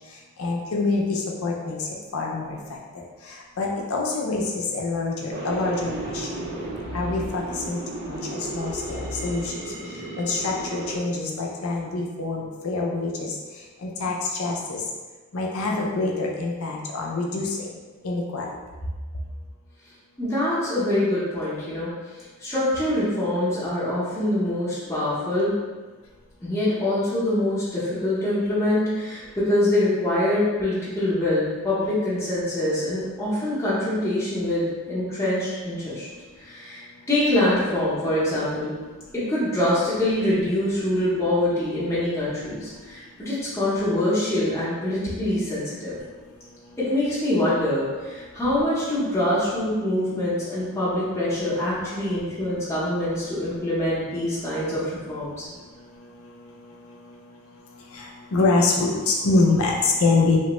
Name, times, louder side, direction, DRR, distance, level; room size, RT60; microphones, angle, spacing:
voice 1, 0.4-1.8 2.1-2.6 3.6-6.3 6.9-7.8 8.1-9.0 9.2-9.4 10.2-13.3 13.8-14.8 15.3-17.6 18.0-18.5 57.9-60.4, left 3 dB, 75° left, -1 dB, 0.5 m, -25 dB
sound 1, 5.3-11.0, right 1 dB, 50° right, 0.5 m, -33 dB
voice 2, 20.2-22.0 22.4-25.6 26.4-36.1 36.4-38.7 39.1-46.0 46.8-55.5, left 1 dB, 10° left, -11 dB, 0.7 m, -24 dB
3.0 x 2.1 x 2.9 m, 1.3 s
head